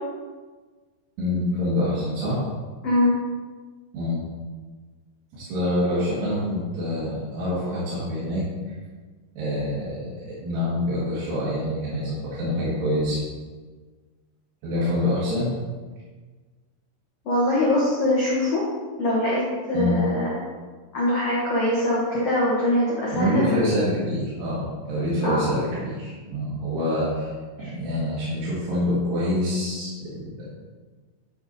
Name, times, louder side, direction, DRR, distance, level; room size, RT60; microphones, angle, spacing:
voice 1, 1.2-2.4 3.9-4.2 5.3-8.4 9.4-10.2 10.4-13.2 14.6-15.5 19.7-20.0 23.1-27.3 27.6-30.5, left 1 dB, 75° right, -10 dB, 4.0 m, -26 dB
voice 2, 2.8-3.1 17.2-18.6 19.0-19.4 19.7-20.3 20.9-23.8 25.2-25.4 27.6-27.7, left 1 dB, 70° left, -6 dB, 1.5 m, -22 dB
9.8 x 4.2 x 4.0 m, 1.4 s
omnidirectional pair, 4.9 m